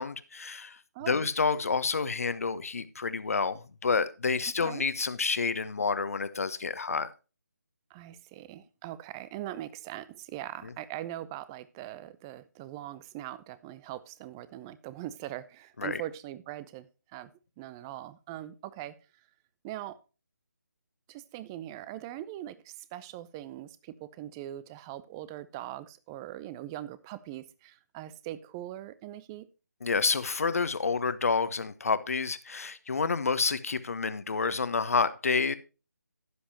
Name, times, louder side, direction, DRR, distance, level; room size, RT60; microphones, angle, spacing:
voice 1, 0.0-0.8 1.1-7.1 15.8-16.0 29.8-35.5, left 4 dB, 55° left, 1.2 m, -29 dB
voice 2, 0.9-1.3 4.6-4.8 7.9-17.3 17.6-19.0 19.6-20.0 21.1-29.5, right 13 dB, 15° right, 0.5 m, -41 dB
12.5 x 10.0 x 2.8 m
figure-of-eight pair, 150°, 9 cm